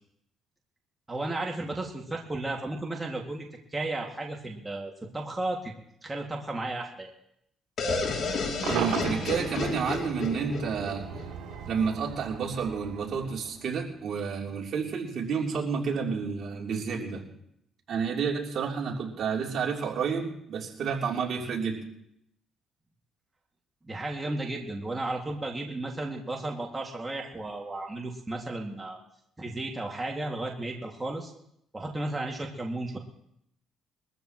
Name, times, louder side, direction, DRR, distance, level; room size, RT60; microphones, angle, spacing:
voice 1, 1.1-5.7 6.0-7.1 23.8-29.0 29.4-31.3 31.7-33.0, right 2 dB, 20° right, 0 dB, 2.3 m, -34 dB
sound 1, 7.8-11.5, left 4 dB, 60° left, 3.0 m, -32 dB
Cheering / Crowd / Fireworks, 8.6-13.9, right 8 dB, 80° right, 3.1 m, -37 dB
voice 2, 8.7-11.1 11.7-17.2 17.9-21.8, right 6 dB, 60° right, -1 dB, 3.4 m, -30 dB
22.5 x 14.0 x 3.1 m, 0.74 s
cardioid pair, 85°, 0 cm